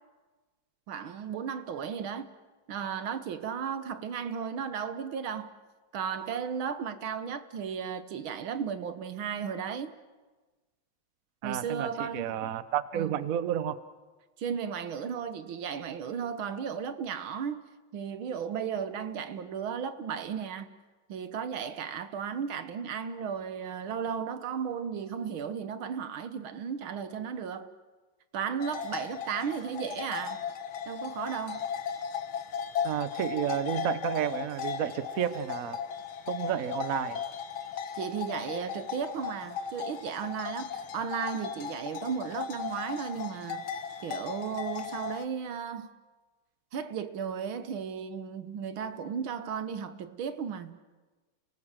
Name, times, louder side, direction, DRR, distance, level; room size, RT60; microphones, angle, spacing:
voice 1, 0.9-2.3 2.7-5.5 5.9-9.9 11.4-12.5 12.9-13.1 14.4-17.6 17.9-20.7 21.1-27.7 28.3-30.4 30.9-31.7 38.0-45.9 46.7-50.8, right 7 dB, 80° right, 2.0 m, -35 dB
voice 2, 11.4-13.8 32.8-35.8 36.3-37.2, right 10 dB, 55° right, 1.1 m, -31 dB
sound 1, 28.6-45.3, left 7 dB, 80° left, 2.0 m, -37 dB
30.0 x 19.0 x 7.4 m
omnidirectional pair, 2.2 m